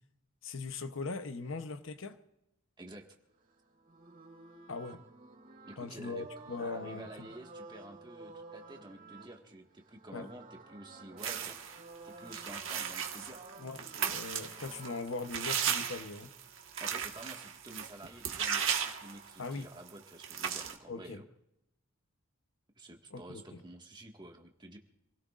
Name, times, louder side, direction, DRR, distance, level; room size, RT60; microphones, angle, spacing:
voice 1, 0.4-2.2 4.7-5.0 5.8-7.1 10.1-10.3 13.6-16.3 19.4-19.7 20.9-21.2 23.1-23.6, left 3 dB, 65° left, 0.8 m, -40 dB
voice 2, 2.8-3.1 5.7-6.3 6.6-11.6 12.0-13.4 16.8-21.3 22.8-24.8, right 1 dB, 20° right, 1.7 m, -50 dB
sound 1, 3.4-15.1 16.2-17.3, right 3 dB, 40° right, 4.4 m, -52 dB
sound 2, 11.2-11.8 12.3-19.6 19.9-20.0 20.2-20.7, right 8 dB, 65° right, 1.5 m, -36 dB
27.5 x 17.0 x 2.5 m
head